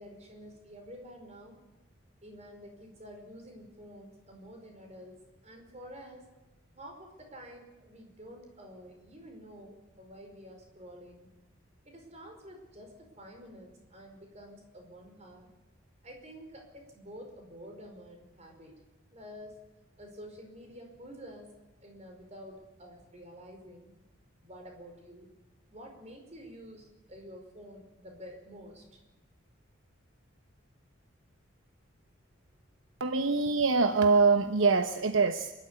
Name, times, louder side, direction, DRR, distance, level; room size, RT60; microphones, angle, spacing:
voice 1, 0.0-1.6 2.2-6.2 6.7-11.3 11.8-15.5 16.0-18.7 19.1-19.6 20.0-21.5 21.8-23.9 24.4-25.3 25.7-28.8, equal, 30° right, 3 dB, 5.1 m, -49 dB
voice 2, 33.0-35.5, right 4 dB, 70° right, 8 dB, 1.0 m, -24 dB
27.0 x 12.5 x 9.8 m, 1.1 s
head